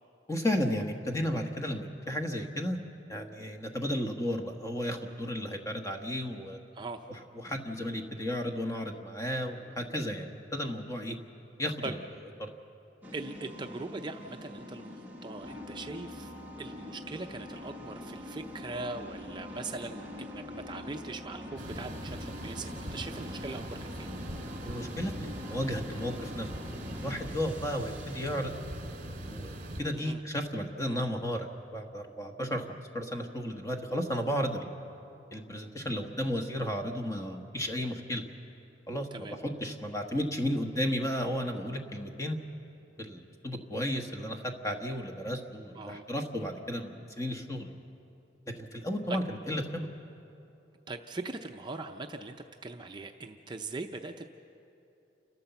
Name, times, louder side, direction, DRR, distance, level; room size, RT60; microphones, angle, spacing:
voice 1, 0.3-2.8 3.1-6.6 7.1-11.1 11.6-12.0 12.4-12.5 24.6-26.5 26.9-28.5 29.3-29.5 29.8-34.7 35.3-38.2 38.9-42.4 43.0-47.7 48.5-49.9, equal, 15° left, 4 dB, 1.3 m, -33 dB
sound 1, 13.0-28.7, left 1 dB, 10° right, 1.4 m, -44 dB
voice 2, 13.1-14.9 15.2-16.3 16.6-24.1 29.9-30.2 39.1-39.4 45.8-46.0 50.9-52.4 52.6-54.2, right 3 dB, 25° right, 4 dB, 0.5 m, -40 dB
sound 2, 21.6-29.8, right 1 dB, 45° right, 2.4 m, -41 dB
29.0 x 13.0 x 7.0 m, 2.8 s
head